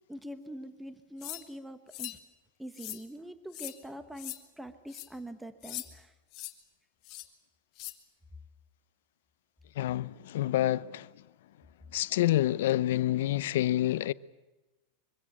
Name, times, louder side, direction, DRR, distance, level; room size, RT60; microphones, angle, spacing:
voice 1, 0.1-2.2 2.6-6.1, right 1 dB, 5° right, 1.0 m, -44 dB
sound 1, 1.2-1.4 1.9-2.2 2.7-3.0 3.5-3.8 4.2-4.4 4.9-5.1 5.6-5.9 6.3-6.5 7.0-7.3 7.8-7.9, left 16 dB, 40° left, 2.0 m, -40 dB
voice 2, 9.8-11.1 11.9-14.1, left 14 dB, 70° left, 0.7 m, -28 dB
24.0 x 16.5 x 9.9 m
supercardioid pair, 160°, 0 cm